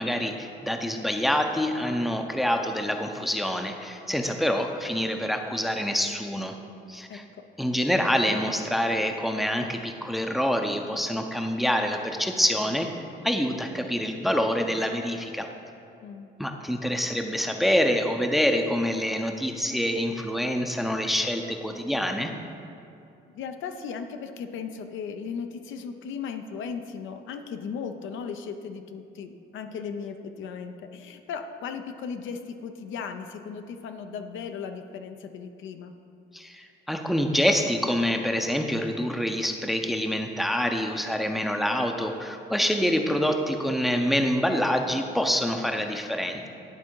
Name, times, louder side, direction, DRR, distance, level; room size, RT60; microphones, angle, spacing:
voice 1, 0.0-6.5 6.9-7.2 7.6-12.9 13.2-15.5 16.4-22.3 36.3-46.5, equal, ahead, 4 dB, 0.5 m, -26 dB
voice 2, 16.0-16.3 23.3-35.9, left 6 dB, 75° left, 7 dB, 0.5 m, -36 dB
11.0 x 3.6 x 4.5 m, 2.7 s
cardioid pair, 90°, 20 cm